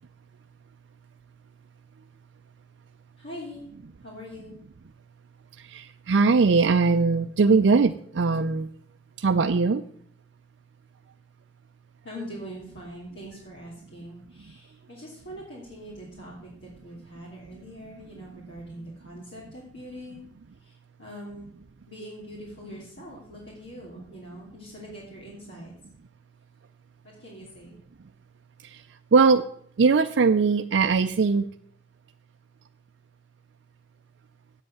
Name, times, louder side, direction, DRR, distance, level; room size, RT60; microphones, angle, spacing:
voice 1, 3.2-3.6 4.0-4.5 12.0-20.2 20.6-21.5 21.9-25.7 27.2-27.8, equal, 70° left, -5 dB, 2.9 m, -42 dB
voice 2, 5.6-8.7 9.2-9.8 28.6-28.8 29.1-29.4 29.8-31.5, right 4 dB, 70° right, 7 dB, 0.4 m, -21 dB
8.2 x 7.8 x 7.8 m, 0.63 s
head